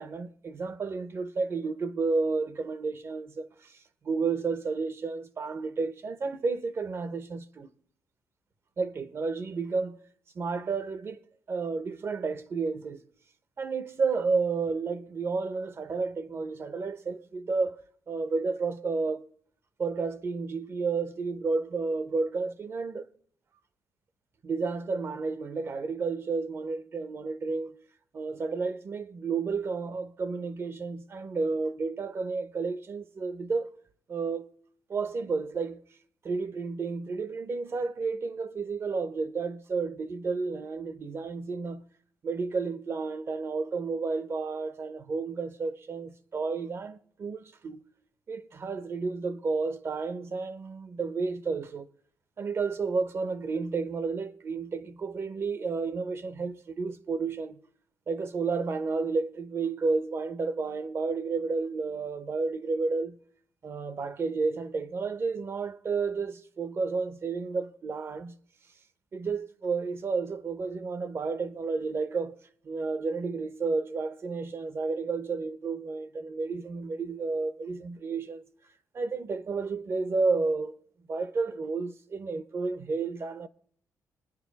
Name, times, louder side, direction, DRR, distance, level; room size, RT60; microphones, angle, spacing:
voice 1, 0.0-3.8 4.0-7.7 8.8-10.0 10.3-11.2 11.5-13.0 13.6-17.8 18.1-19.2 19.8-23.1 24.4-27.8 28.1-33.7 34.1-34.5 34.9-35.8 36.2-41.8 42.2-47.8 48.3-51.9 52.4-57.6 58.1-63.2 63.6-68.4 69.1-72.4 72.6-78.4 78.9-80.7 81.1-83.5, right 4 dB, 40° right, 0.9 m, -31 dB
25.0 x 10.0 x 4.1 m
cardioid pair, 110°, 6 cm